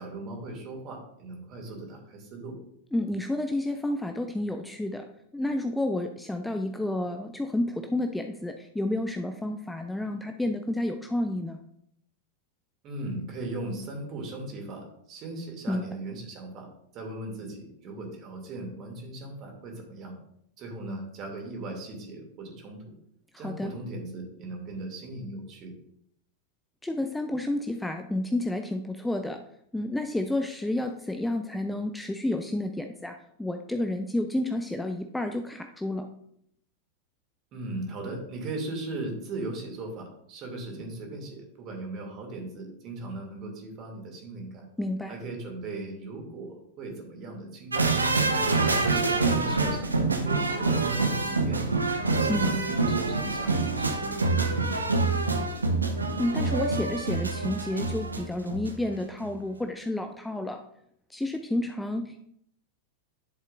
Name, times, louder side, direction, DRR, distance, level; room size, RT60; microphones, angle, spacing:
voice 1, 0.0-2.6 12.8-16.7 16.9-20.2 20.6-22.9 23.4-25.7 37.5-44.7 45.1-47.9 48.4-51.6 52.2-54.6, right 2 dB, 35° right, 1 dB, 2.5 m, -38 dB
voice 2, 2.9-5.0 5.3-11.6 15.7-15.9 23.3-23.7 26.8-29.4 29.7-36.1 44.8-45.2 52.3-52.5 56.2-60.6 61.1-62.2, left 1 dB, 5° left, 6 dB, 0.5 m, -30 dB
sound 1, 47.7-58.9 59.2-59.3, right 3 dB, 80° right, 0.9 m, -26 dB
11.0 x 7.3 x 2.5 m, 0.71 s
figure-of-eight pair, 90°, 0 cm